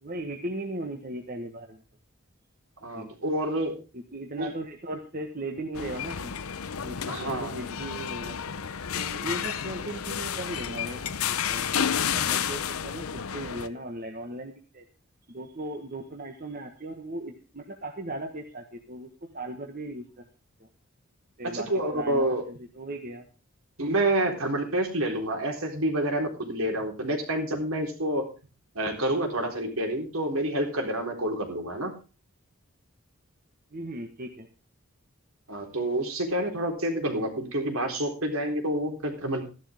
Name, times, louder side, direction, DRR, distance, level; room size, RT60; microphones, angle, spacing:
voice 1, 0.0-1.8 2.9-3.1 3.9-6.3 6.8-8.4 8.9-14.8 15.3-20.2 20.6-20.7 21.4-23.3 33.7-34.5, right 1 dB, 40° right, 4 dB, 1.5 m, -37 dB
voice 2, 2.8-3.8 4.4-4.5 7.1-7.6 21.5-22.4 23.8-28.3 28.7-31.9 35.5-39.5, right 1 dB, 80° right, 3 dB, 3.9 m, -28 dB
sound 1, 5.7-13.7, left 8 dB, 90° left, 0.8 m, -31 dB
14.0 x 11.5 x 3.6 m, 0.33 s
head